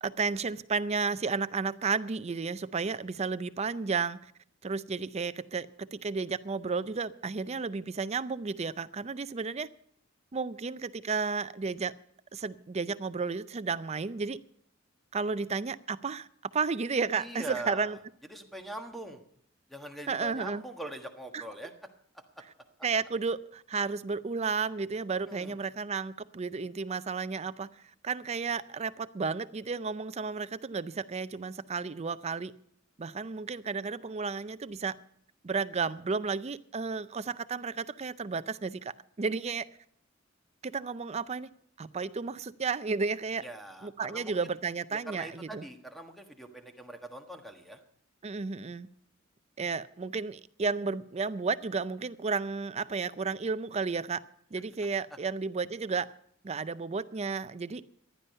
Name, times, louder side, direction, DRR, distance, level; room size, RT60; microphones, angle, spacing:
voice 1, 0.0-4.2 4.6-9.7 10.3-11.9 12.3-14.4 15.1-16.3 16.5-18.0 20.1-20.6 21.3-21.4 22.8-27.7 28.0-32.5 33.0-35.0 35.4-39.7 40.6-41.5 41.8-43.4 43.8-45.7 48.2-48.9 49.6-54.2 54.5-56.1 56.4-57.8, right 4 dB, 35° right, 0.5 m, -32 dB
voice 2, 17.1-18.0 18.3-19.2 19.7-21.7 25.3-25.6 43.4-44.5 45.1-47.8, right 1 dB, ahead, 1.5 m, -42 dB
15.5 x 11.0 x 5.5 m
head